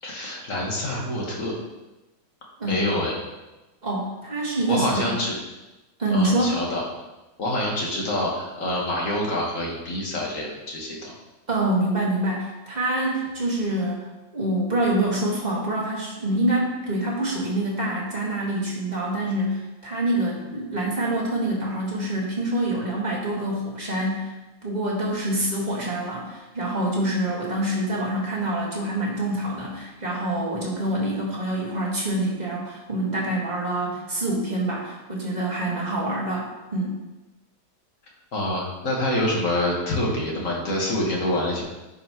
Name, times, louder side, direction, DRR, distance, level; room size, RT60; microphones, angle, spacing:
voice 1, 0.0-1.6 2.6-3.2 4.7-5.3 6.1-6.8 7.4-11.1 38.3-41.6, left 1 dB, 40° left, -2 dB, 1.7 m, -26 dB
voice 2, 3.8-5.1 6.0-6.6 11.5-14.0 14.3-24.3 24.6-36.9, right 1 dB, 20° right, -3 dB, 1.5 m, -26 dB
10.0 x 5.7 x 3.0 m, 1.1 s
omnidirectional pair, 2.3 m